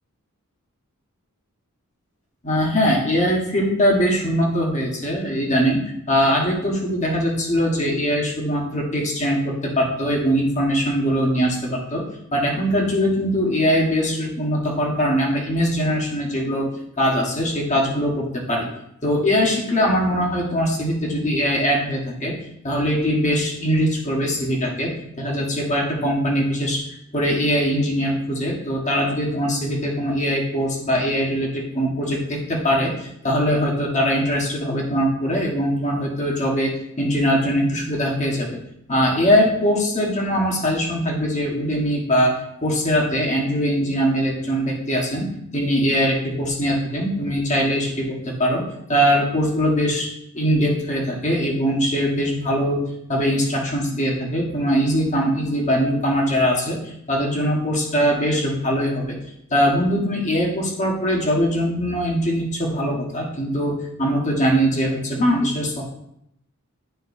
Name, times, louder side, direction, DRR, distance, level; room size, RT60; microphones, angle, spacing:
voice 1, 2.4-12.0 12.3-16.7 17.0-18.7 19.0-22.3 22.6-26.8 27.1-36.7 37.0-38.6 38.9-42.3 42.6-50.1 50.3-59.2 59.5-65.9, equal, 35° left, -2 dB, 1.4 m, -21 dB
11.0 x 3.8 x 2.7 m, 0.77 s
head